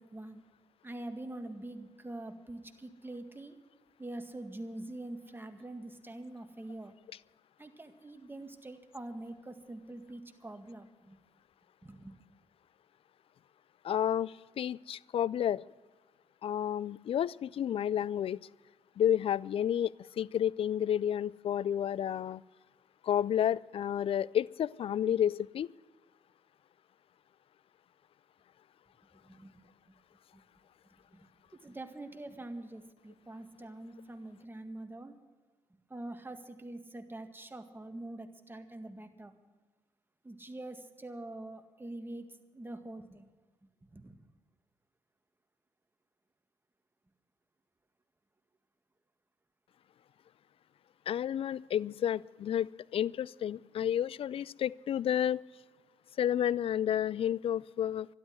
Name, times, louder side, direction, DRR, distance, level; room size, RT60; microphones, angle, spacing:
voice 1, 0.8-3.6 4.0-6.9 7.6-11.2 11.8-12.2 29.2-29.5 30.3-30.4 31.1-31.3 31.6-35.2 35.9-39.3 40.2-42.3 42.5-43.3 43.9-44.2, right 2 dB, 20° right, 6 dB, 2.0 m, -44 dB
voice 2, 13.8-15.6 16.4-18.4 19.0-22.4 23.0-25.7 51.1-55.4 56.2-58.1, left 10 dB, 55° left, 23 dB, 0.4 m, -31 dB
12.5 x 12.0 x 7.8 m, 1.3 s
hypercardioid pair, 45°, 11 cm